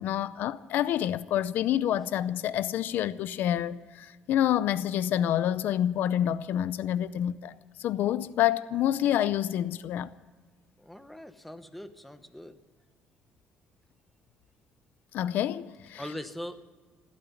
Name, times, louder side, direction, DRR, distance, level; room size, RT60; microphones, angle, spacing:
voice 1, 0.0-7.5 7.8-10.1 15.1-16.0, left 11 dB, 65° left, 0.5 m, -28 dB
voice 2, 10.8-12.6 15.9-16.7, left 1 dB, 5° left, 1.0 m, -41 dB
15.5 x 13.0 x 7.2 m
cardioid pair, 140°, 3 cm